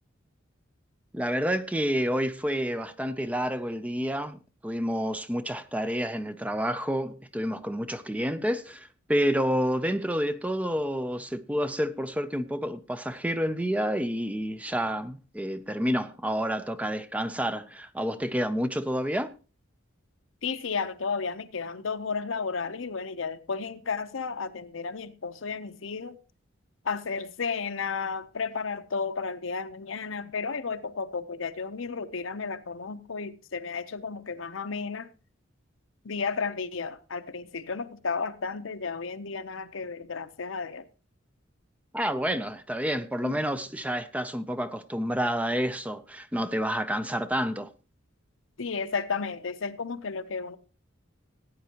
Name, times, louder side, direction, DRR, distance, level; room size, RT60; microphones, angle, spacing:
voice 1, 1.1-19.3 41.9-47.7, equal, 5° right, 0.5 m, -29 dB
voice 2, 20.4-26.2 26.8-35.1 36.0-40.8 43.2-43.3 48.6-50.6, left 5 dB, 75° left, 0.8 m, -33 dB
16.0 x 9.4 x 2.9 m
head